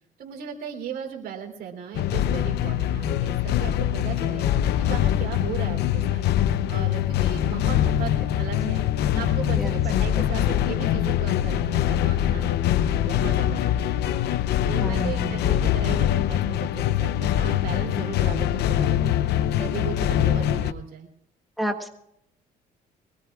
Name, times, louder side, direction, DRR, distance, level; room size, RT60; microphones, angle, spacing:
voice 1, 0.2-4.5 4.8-6.3 6.7-8.8 9.1-14.1 14.6-19.1 19.6-21.1, right 8 dB, 65° right, 2 dB, 3.4 m, -36 dB
sound 1, 1.9-20.7, left 11 dB, 75° left, 0.8 m, -23 dB
voice 2, 14.8-15.4 21.6-21.9, equal, ahead, 3 dB, 1.4 m, -29 dB
23.5 x 19.5 x 2.4 m, 0.77 s
cardioid pair, 110°, 17 cm